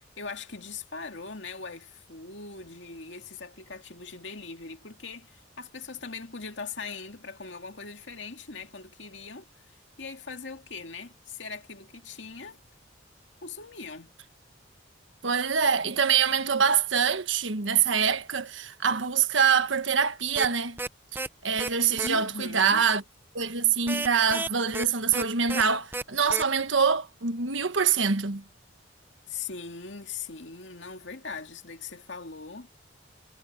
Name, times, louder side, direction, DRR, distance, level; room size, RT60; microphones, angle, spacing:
voice 1, 0.0-9.7 10.0-12.6 13.4-14.1 22.0-22.8 29.3-32.7, left 4 dB, 70° left, 2.3 m, -40 dB
voice 2, 15.2-20.8 21.4-23.0 23.3-28.4, right 6 dB, 80° right, 1.4 m, -25 dB
sound 1, 20.4-20.5 20.8-20.9 21.2-21.3 21.6-21.7 22.0-22.1 23.9-24.9 25.1-25.2 25.5-25.6 25.9-26.0 26.3-26.4, right 3 dB, 10° right, 0.6 m, -31 dB
head